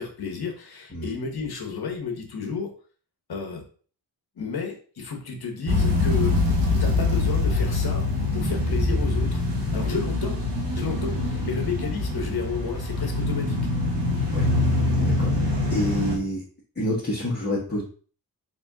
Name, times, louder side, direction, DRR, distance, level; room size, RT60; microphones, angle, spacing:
voice 1, 0.0-2.7 3.3-3.6 4.4-6.4 6.8-8.0 8.3-9.5 9.7-10.4 10.7-13.6, left 5 dB, 60° left, 2 dB, 1.2 m, -32 dB
sound 1, 5.7-16.2, left 2 dB, 80° right, 1.3 m, -24 dB
voice 2, 14.9-16.4 16.7-17.8, equal, 25° left, -7 dB, 1.3 m, -28 dB
4.3 x 2.7 x 3.6 m, 0.41 s
wide cardioid pair, 100°, 42 cm